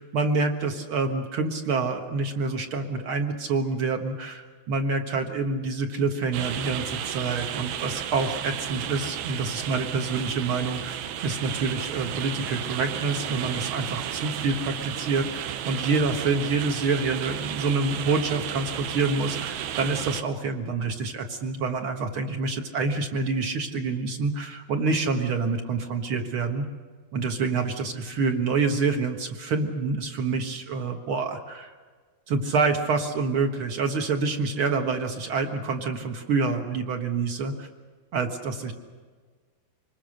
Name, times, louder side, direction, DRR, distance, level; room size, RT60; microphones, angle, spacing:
voice 1, 0.0-11.0 11.2-26.7 27.1-31.7 32.3-37.7 38.1-38.7, right 4 dB, 55° right, 5 dB, 1.5 m, -27 dB
sound 1, 6.3-20.2, right 10 dB, 75° right, 2.8 m, -33 dB
26.0 x 21.0 x 6.6 m, 1.5 s
omnidirectional pair, 4.6 m